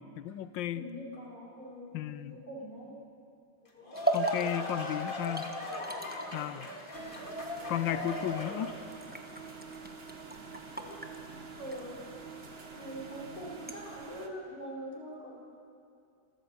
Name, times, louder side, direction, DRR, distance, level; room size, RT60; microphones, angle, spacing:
voice 1, 0.0-0.9 1.9-2.4 4.1-5.5 6.3-6.7 7.7-8.8, left 12 dB, 90° left, 15 dB, 1.4 m, -34 dB
voice 2, 0.7-2.9 7.0-7.2 10.8-11.0 11.3-12.0 12.8-15.3, equal, 55° left, -5 dB, 5.5 m, -43 dB
sound 1, 3.6-9.0, left 2 dB, 30° left, 2.1 m, -39 dB
sound 2, 3.9-13.8, right 2 dB, 5° right, 1.0 m, -39 dB
sound 3, 6.9-14.3, right 5 dB, 35° right, 1.4 m, -47 dB
26.5 x 13.5 x 8.4 m, 2.5 s
omnidirectional pair, 2.0 m